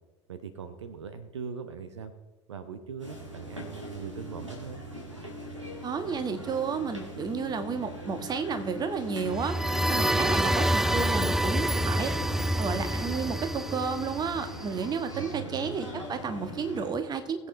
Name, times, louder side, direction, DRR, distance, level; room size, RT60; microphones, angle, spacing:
voice 1, 0.3-2.1 2.5-4.8 15.1-15.8, right 6 dB, 70° right, 11 dB, 0.8 m, -41 dB
sound 1, 3.0-16.9, left 1 dB, 90° right, 2.2 m, -41 dB
voice 2, 5.8-12.1 12.6-17.5, right 5 dB, 25° right, 9 dB, 1.4 m, -32 dB
sound 2, 9.3-15.0, right 1 dB, 5° right, 0.4 m, -27 dB
21.0 x 8.2 x 3.3 m, 1.2 s
figure-of-eight pair, 75°, 15 cm